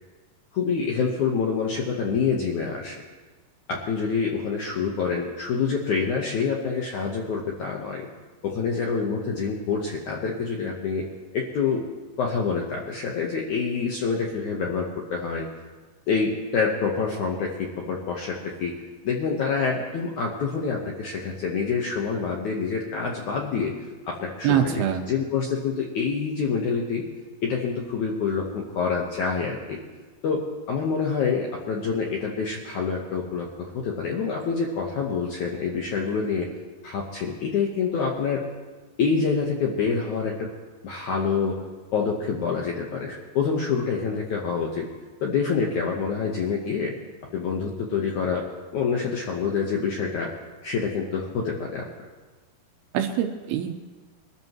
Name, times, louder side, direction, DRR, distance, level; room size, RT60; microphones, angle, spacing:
voice 1, 0.5-3.0 3.7-8.1 8.4-11.0 11.3-11.8 12.2-15.5 16.1-18.7 19.0-23.7 24.1-27.0 27.4-29.8 30.2-36.5 36.8-38.5 39.0-40.5 40.8-41.6 41.9-44.8 45.2-46.9 47.3-48.4 48.7-50.3 50.6-51.8, left 5 dB, 70° left, -1 dB, 1.9 m, -26 dB
voice 2, 24.4-25.0 52.9-53.7, right 9 dB, 80° right, 5 dB, 2.5 m, -24 dB
23.5 x 13.0 x 3.1 m, 1.3 s
omnidirectional pair, 5.0 m